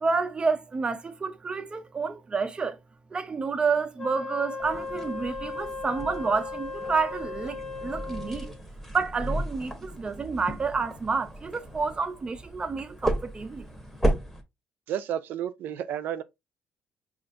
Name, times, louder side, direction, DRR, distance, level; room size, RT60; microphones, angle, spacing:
voice 1, 0.0-2.8 3.1-8.5 8.9-13.7, right 4 dB, 30° right, 0.6 m, -29 dB
Wind instrument woodwind instrument, 4.0-8.6, left 3 dB, 25° left, 0.6 m, -37 dB
sound 1, 4.6-14.4, right 1 dB, 5° left, 1.0 m, -34 dB
voice 2, 14.9-16.2, right 10 dB, 80° right, 0.4 m, -31 dB
5.0 x 2.5 x 2.5 m
cardioid pair, 105°, 3 cm